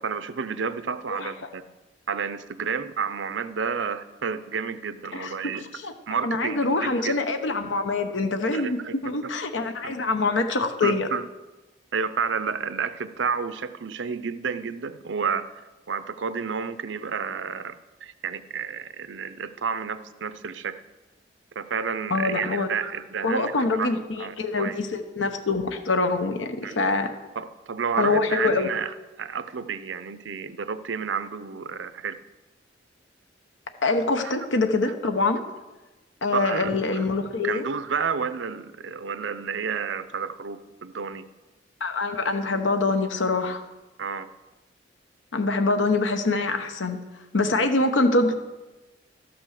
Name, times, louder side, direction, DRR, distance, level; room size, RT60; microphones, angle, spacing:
voice 1, 0.0-1.6 2.1-5.7 6.1-7.2 8.5-9.3 9.8-9.9 10.8-11.3 11.9-15.4 15.9-17.7 18.0-20.7 21.6-23.9 24.2-24.8 26.6-26.8 27.4-32.1 34.2-34.3 36.3-37.1 37.4-41.2 44.0-44.3, right 6 dB, 80° right, 13 dB, 0.6 m, -30 dB
voice 2, 6.2-11.1 22.1-22.7 23.2-27.1 28.0-28.7 33.8-35.4 36.2-37.6 41.8-43.6 45.3-47.0 47.3-48.4, left 3 dB, 85° left, 7 dB, 0.9 m, -24 dB
13.0 x 6.1 x 6.5 m, 1.1 s
head